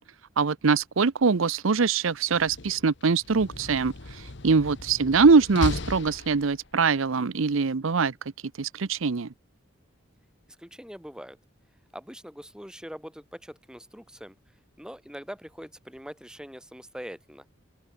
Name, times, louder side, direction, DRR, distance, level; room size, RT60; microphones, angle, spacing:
voice 1, 0.4-8.1 8.6-9.3, right 4 dB, 80° right, 0.7 m, -23 dB
Slam, 2.2-6.9, left 2 dB, 60° left, 1.3 m, -37 dB
voice 2, 10.6-11.4 11.9-14.3 14.8-17.4, equal, 5° right, 4.4 m, -42 dB
open air
head